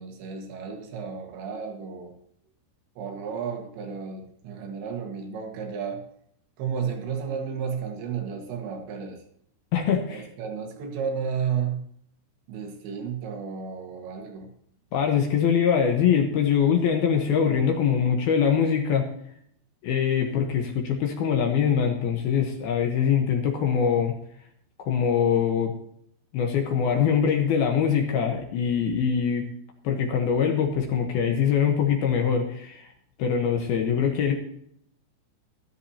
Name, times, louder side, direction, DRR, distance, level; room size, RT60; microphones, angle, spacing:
voice 1, 0.0-2.1 3.0-6.0 6.6-9.2 10.0-11.8 12.5-14.5, right 6 dB, 75° right, 2 dB, 3.8 m, -32 dB
voice 2, 9.7-10.3 14.9-19.0 19.8-24.1 24.8-25.7 26.3-29.4 29.8-32.9 33.2-34.3, left 7 dB, 70° left, 2 dB, 2.7 m, -23 dB
13.5 x 13.0 x 2.8 m, 0.68 s
omnidirectional pair, 5.4 m